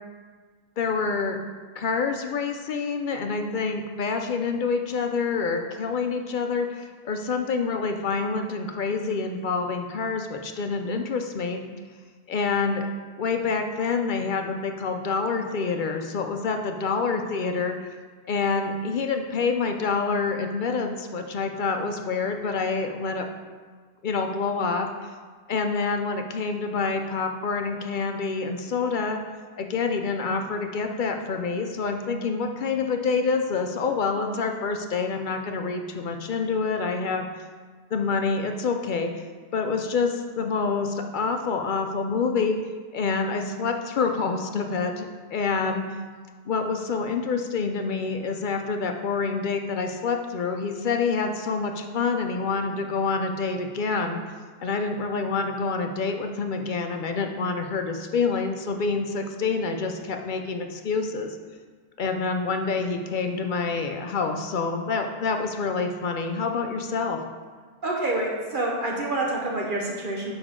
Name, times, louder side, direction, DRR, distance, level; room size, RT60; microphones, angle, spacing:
voice 1, 0.8-1.4 1.8-11.6 12.3-12.9 13.2-17.8 18.3-23.3 24.0-25.1 25.5-29.2 29.6-37.3 37.9-39.2 39.5-42.6 42.9-45.8 46.5-54.2 54.6-61.4 62.0-67.2, left 4 dB, 60° left, 5 dB, 0.6 m, -27 dB
voice 2, 67.8-70.4, right 2 dB, 55° right, -2 dB, 1.1 m, -27 dB
6.8 x 5.2 x 3.6 m, 1.5 s
omnidirectional pair, 1.1 m